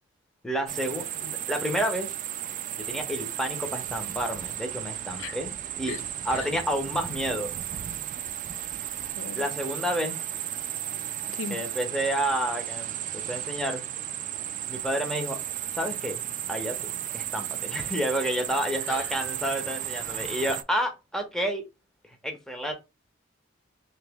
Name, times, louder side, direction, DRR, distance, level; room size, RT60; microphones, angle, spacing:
voice 1, 0.4-2.1 2.8-6.0 6.2-7.5 9.3-10.2 11.5-13.9 14.7-15.4 15.7-21.6 22.2-22.7, equal, 5° left, 0.8 m, -30 dB
sound 1, 0.7-20.6, right 11 dB, 40° right, 0.3 m, -34 dB
voice 2, 8.9-9.5 11.3-11.6 18.8-19.1, left 6 dB, 75° left, 0.4 m, -38 dB
2.9 x 2.9 x 3.5 m
head